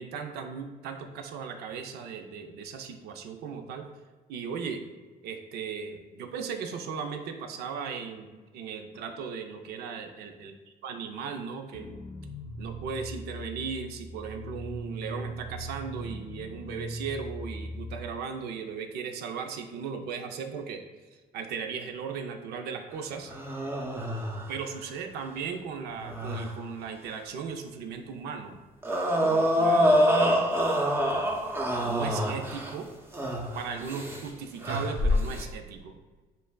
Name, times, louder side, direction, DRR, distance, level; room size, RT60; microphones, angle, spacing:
voice 1, 0.0-3.8 4.3-4.8 5.2-10.5 10.8-11.9 12.6-20.8 21.3-23.3 24.5-28.6 29.2-30.5 31.8-32.9 33.5-36.0, right 6 dB, 80° right, 5 dB, 0.5 m, -37 dB
sound 1, 11.7-17.9, equal, 30° left, 0.4 m, -40 dB
sound 2, 23.3-24.6 25.9-26.5 28.8-32.8 33.1-34.3 34.6-35.4, equal, 15° right, 0.6 m, -26 dB
7.2 x 2.6 x 2.3 m, 1.3 s
cardioid pair, 115°, 17 cm